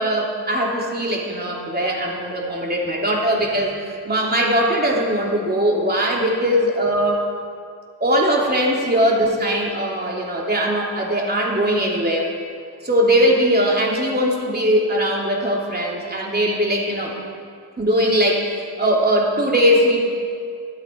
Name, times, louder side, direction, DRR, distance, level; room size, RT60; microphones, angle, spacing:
voice 1, 0.0-3.7 4.0-7.2 8.0-12.3 12.8-17.1 17.8-20.1, equal, 25° right, -2 dB, 3.1 m, -20 dB
23.5 x 8.9 x 4.6 m, 2.3 s
cardioid pair, 75°, 41 cm